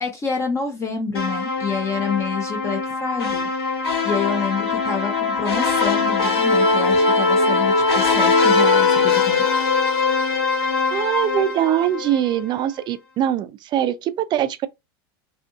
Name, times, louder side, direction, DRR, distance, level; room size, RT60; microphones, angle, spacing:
voice 1, 0.0-3.5 4.0-9.6, left 5 dB, 20° left, 0.6 m, -27 dB
sound 1, 1.1-12.4, left 4 dB, 90° left, 1.6 m, -21 dB
voice 2, 10.9-14.7, right 11 dB, 35° right, 0.4 m, -22 dB
2.7 x 2.5 x 2.3 m
hypercardioid pair, 105°, 13 cm